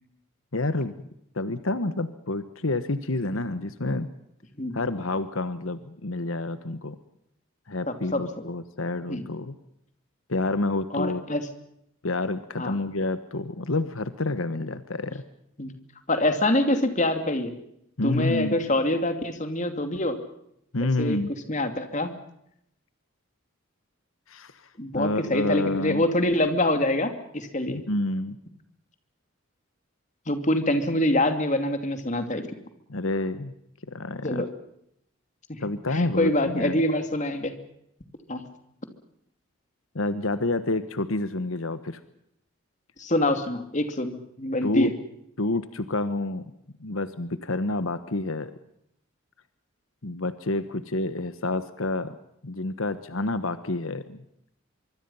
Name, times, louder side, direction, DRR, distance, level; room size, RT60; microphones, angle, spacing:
voice 1, 0.5-0.9 1.3-4.1 4.7-7.0 7.7-9.6 10.3-11.3 12.0-15.2 18.0-18.6 20.7-21.3 24.3-24.6 24.9-26.0 27.7-28.4 32.9-33.5 33.9-34.4 35.6-36.8 39.9-42.0 44.6-44.9 45.4-46.4 46.8-48.5 50.0-52.1 52.4-54.2, left 2 dB, 80° left, 12 dB, 1.3 m, -28 dB
voice 2, 7.8-8.2 9.1-9.2 10.9-11.4 12.6-12.8 15.6-15.7 16.1-17.5 18.0-20.2 20.8-21.2 21.5-22.1 24.8-27.8 30.3-32.4 34.2-34.5 35.5-35.6 35.9-37.5 38.3-38.4 43.0-44.9, left 1 dB, 35° left, 7 dB, 2.7 m, -25 dB
25.0 x 24.5 x 5.7 m, 0.74 s
head